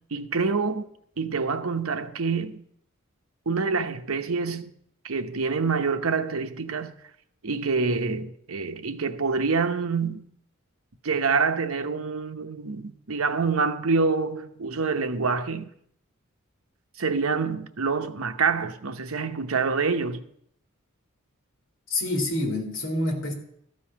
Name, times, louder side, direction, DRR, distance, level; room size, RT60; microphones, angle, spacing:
voice 1, 0.1-0.9 1.2-2.6 3.5-4.7 5.0-6.9 7.4-10.2 11.0-15.7 17.0-20.2, right 4 dB, 90° right, 0.9 m, -26 dB
voice 2, 21.9-23.3, left 1 dB, 65° left, 2.8 m, -27 dB
13.5 x 5.4 x 8.7 m
head